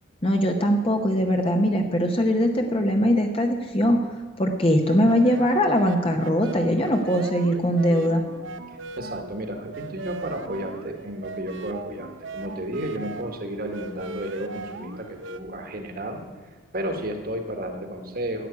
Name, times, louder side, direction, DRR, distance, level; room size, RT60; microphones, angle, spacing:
voice 1, 0.2-4.0 4.4-8.2, equal, 25° left, 4 dB, 0.8 m, -21 dB
sound 1, 4.9-15.4, right 3 dB, 65° right, 0.7 m, -38 dB
voice 2, 9.0-16.2 16.7-18.5, right 1 dB, 45° right, 5 dB, 1.6 m, -32 dB
11.0 x 8.1 x 9.5 m, 1.4 s
head